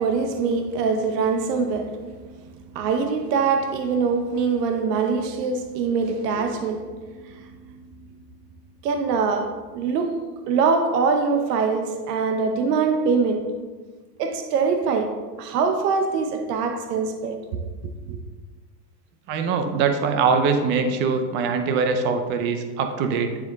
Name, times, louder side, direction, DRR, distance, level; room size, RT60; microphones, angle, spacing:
voice 1, 0.0-8.2 8.8-13.5 14.2-17.6 18.1-18.2, right 5 dB, 80° right, 0.8 m, -24 dB
voice 2, 19.3-23.4, right 5 dB, 25° right, 0.4 m, -22 dB
9.6 x 3.5 x 3.9 m
supercardioid pair, 140°, 47 cm